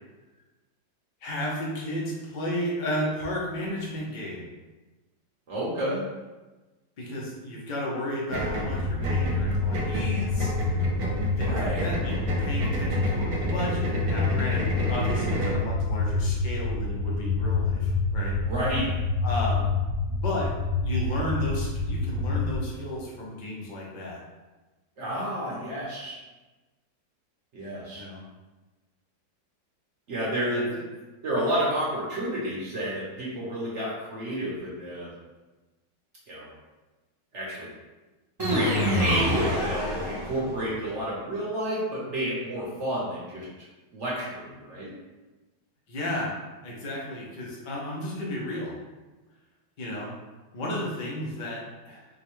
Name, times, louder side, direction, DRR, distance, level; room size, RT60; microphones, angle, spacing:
voice 1, 1.2-4.5 7.0-10.8 11.2-18.4 19.2-19.7 20.0-20.5 20.8-24.2 28.0-28.2 30.4-30.7 45.9-46.3 46.6-48.8 49.8-50.1 50.5-52.1, left 1 dB, 65° left, -4 dB, 0.4 m, -33 dB
voice 2, 5.5-6.0 11.4-11.9 18.4-18.9 25.0-26.2 27.5-28.0 30.1-30.8 31.2-35.1 36.3-36.5 37.3-37.7 38.4-43.5 43.9-44.9, right 1 dB, 55° right, -6 dB, 0.8 m, -30 dB
sound 1, 8.3-22.6, left 3 dB, 10° right, 0.6 m, -27 dB
sound 2, 8.3-15.7, right 2 dB, 75° right, 1.2 m, -32 dB
sound 3, 38.4-40.7, equal, 40° right, 0.3 m, -26 dB
4.4 x 2.1 x 3.0 m, 1.2 s
omnidirectional pair, 1.9 m